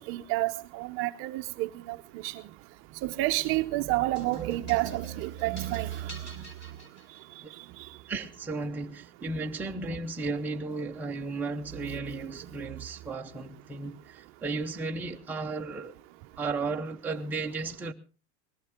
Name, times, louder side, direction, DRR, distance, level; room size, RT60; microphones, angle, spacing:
voice 1, 0.1-2.0 2.2-2.4 3.0-6.4, right 18 dB, 35° right, 0.7 m, -30 dB
sound 1, 4.2-7.5, left 1 dB, 30° left, 4.2 m, -48 dB
voice 2, 8.1-16.0 16.4-17.9, right 3 dB, 5° right, 0.8 m, -34 dB
20.0 x 15.0 x 3.6 m
supercardioid pair, 160°, 35 cm